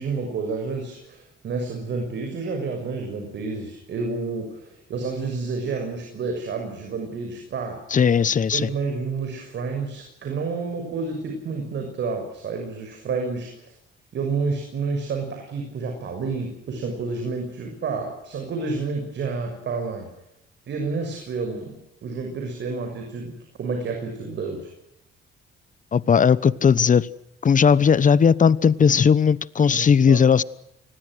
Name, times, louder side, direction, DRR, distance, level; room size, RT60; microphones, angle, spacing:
voice 1, 0.0-7.8 8.5-13.7 14.1-20.1 20.7-24.7 29.7-30.2, right 4 dB, 65° right, 3 dB, 6.6 m, -30 dB
voice 2, 7.9-8.7 25.9-27.1 27.4-30.4, left 6 dB, 40° left, 19 dB, 1.1 m, -17 dB
29.5 x 20.5 x 6.4 m, 0.85 s
cardioid pair, 90°, 20 cm